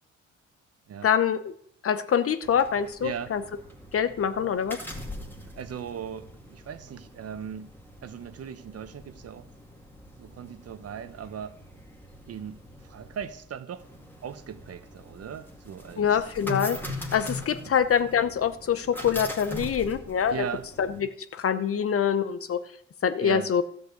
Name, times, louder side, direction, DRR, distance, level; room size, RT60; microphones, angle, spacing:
voice 1, 1.0-1.4 1.8-3.4 3.9-4.8 16.0-20.3 20.8-22.6 23.0-23.6, left 8 dB, 50° left, 12 dB, 0.9 m, -25 dB
sound 1, 2.4-21.0, left 1 dB, 5° left, 2.3 m, -42 dB
voice 2, 3.0-3.3 5.4-7.7 8.0-9.5 10.2-11.5 12.3-12.6 12.8-13.8 14.2-16.2 17.7-17.8 20.3-20.7 23.2-23.5, right 8 dB, 55° right, 12 dB, 1.0 m, -38 dB
13.0 x 5.2 x 8.2 m, 0.67 s
cardioid pair, 90°, 30 cm